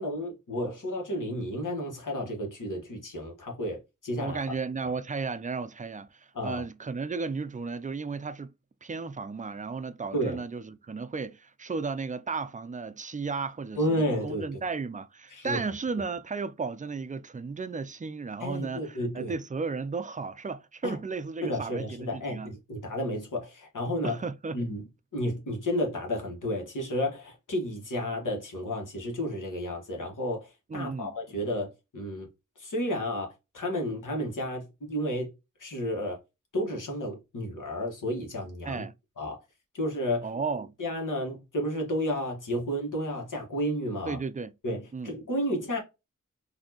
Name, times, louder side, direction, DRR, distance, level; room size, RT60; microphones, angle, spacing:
voice 1, 0.0-4.4 6.3-6.6 10.1-10.4 13.7-14.6 15.3-15.6 18.4-19.3 20.8-21.0 21.4-24.2 24.5-24.8 25.1-32.3 32.6-35.3 35.6-36.2 36.5-38.8 39.2-39.4 39.7-40.3 40.8-44.2 44.6-45.8, equal, 80° left, 1.5 m, -32 dB
voice 2, 4.2-8.5 8.8-22.5 24.0-24.6 30.7-31.1 38.7-38.9 40.2-40.7 44.1-44.5 44.9-45.1, right 4 dB, 25° right, 0.4 m, -34 dB
4.2 x 2.7 x 2.8 m
wide cardioid pair, 90°, 31 cm